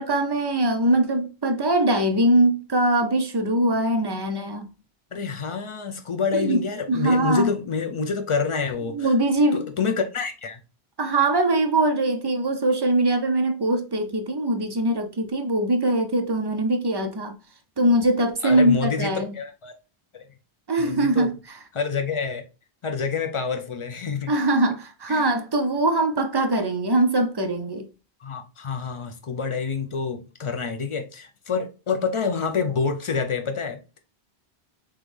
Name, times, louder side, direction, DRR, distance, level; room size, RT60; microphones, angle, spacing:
voice 1, 0.0-4.7 6.3-6.6 6.9-7.5 8.9-9.7 11.0-17.3 17.8-19.3 20.7-21.4 24.3-27.9, right 1 dB, 40° right, 0.3 m, -22 dB
voice 2, 5.1-9.1 9.5-10.6 18.4-19.7 20.8-21.3 21.7-22.4 22.8-24.3 25.1-25.3 28.2-33.8, left 5 dB, 45° left, 0.4 m, -27 dB
3.7 x 3.0 x 3.2 m
omnidirectional pair, 1.1 m